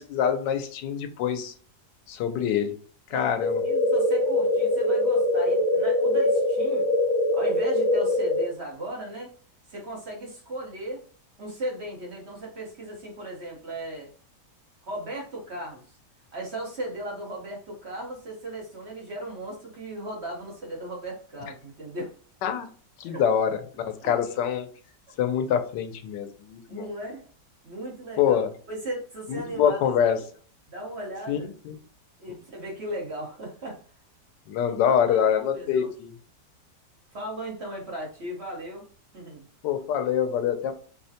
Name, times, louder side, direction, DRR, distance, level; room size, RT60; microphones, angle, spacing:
voice 1, 0.0-1.5 2.1-2.7 3.1-3.6 22.4-22.7 23.0-24.7 25.2-26.9 28.2-28.5 29.3-30.2 31.3-31.7 34.5-36.1 39.6-40.7, left 8 dB, 90° left, 8 dB, 1.3 m, -25 dB
sound 1, 3.4-8.4, left 1 dB, 65° left, 1.0 m, -23 dB
voice 2, 3.6-6.9 7.3-9.3 9.7-11.0 11.4-14.1 14.8-16.0 16.3-22.1 23.0-23.2 24.0-24.1 26.7-27.3 27.6-28.4 28.7-29.8 30.1-30.2 30.7-31.5 32.2-33.8 34.6-35.9 37.1-38.9 39.1-39.5, right 1 dB, 45° right, -2 dB, 1.1 m, -36 dB
4.8 x 2.1 x 2.7 m, 0.44 s
omnidirectional pair, 1.9 m